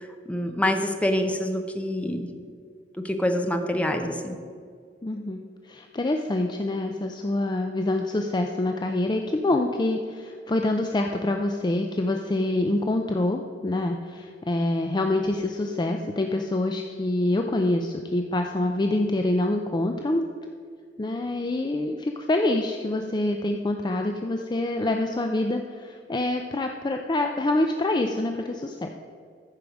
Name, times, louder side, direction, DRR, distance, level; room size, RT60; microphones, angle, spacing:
voice 1, 0.0-2.3 3.0-4.4, left 1 dB, 5° left, 5 dB, 0.8 m, -26 dB
voice 2, 5.0-5.4 5.7-20.3 21.0-29.0, left 2 dB, 25° left, 4 dB, 0.5 m, -26 dB
14.0 x 4.9 x 6.1 m, 2.1 s
head